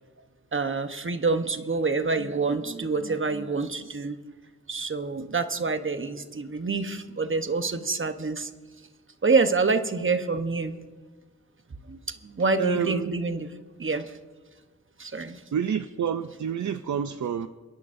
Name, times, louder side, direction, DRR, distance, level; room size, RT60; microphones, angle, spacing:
voice 1, 0.5-4.2 4.7-8.5 9.2-10.7 11.9-13.5 13.8-14.2 15.0-15.4, right 4 dB, 45° right, 8 dB, 1.0 m, -27 dB
voice 2, 12.6-13.1 15.5-17.5, right 7 dB, 75° right, 10 dB, 0.5 m, -28 dB
30.0 x 10.5 x 2.6 m, 1.3 s
wide cardioid pair, 60°, 30 cm